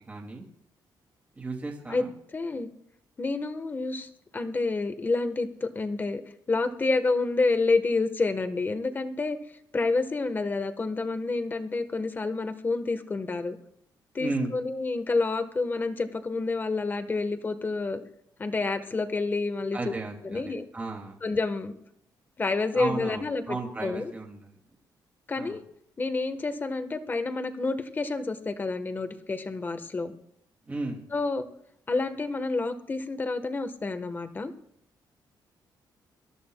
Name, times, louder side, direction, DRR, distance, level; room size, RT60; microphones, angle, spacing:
voice 1, 0.1-0.5 1.4-2.1 14.2-14.6 19.7-21.2 22.7-24.6 25.4-25.6 30.7-31.0, right 3 dB, 20° right, 1 dB, 2.4 m, -34 dB
voice 2, 2.3-2.7 3.2-6.2 6.5-9.4 9.7-13.6 14.1-18.0 18.4-19.9 20.3-20.7 21.2-21.7 22.4-24.1 25.3-25.6 26.0-30.1 31.1-31.5 31.9-34.5, left 3 dB, 25° left, 8 dB, 1.3 m, -29 dB
26.0 x 13.5 x 2.3 m, 0.72 s
wide cardioid pair, 150°, 8 cm